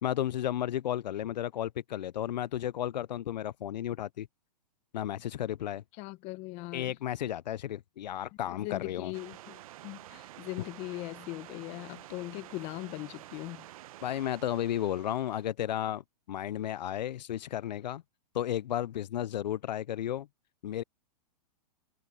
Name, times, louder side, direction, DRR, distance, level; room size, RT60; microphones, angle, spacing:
voice 1, 0.0-4.3 4.9-5.8 6.7-9.1 14.0-18.0 18.3-20.3 20.6-20.8, left 11 dB, 90° left, 0.5 m, -33 dB
voice 2, 6.0-6.9 8.5-13.7, left 21 dB, 30° left, 0.9 m, -40 dB
sound 1, 9.1-15.5, right 15 dB, 55° right, 0.8 m, -50 dB
hypercardioid pair, 145°, 21 cm